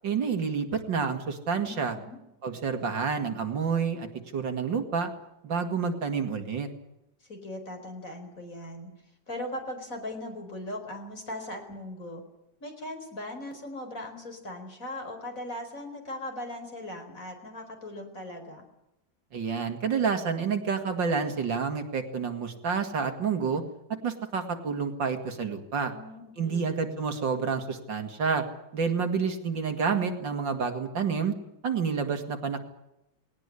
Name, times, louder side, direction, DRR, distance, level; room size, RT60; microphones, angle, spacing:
voice 1, 0.0-2.0 2.4-5.1 5.4-6.7 19.3-23.6 24.0-25.9 26.4-28.4 28.7-31.3 31.6-32.6, right 5 dB, 65° right, 6 dB, 2.9 m, -29 dB
voice 2, 1.6-2.2 7.2-8.9 9.3-12.2 12.6-18.6 25.9-26.7, left 1 dB, 40° left, 4 dB, 5.0 m, -39 dB
20.0 x 18.5 x 9.8 m, 0.88 s
omnidirectional pair, 2.2 m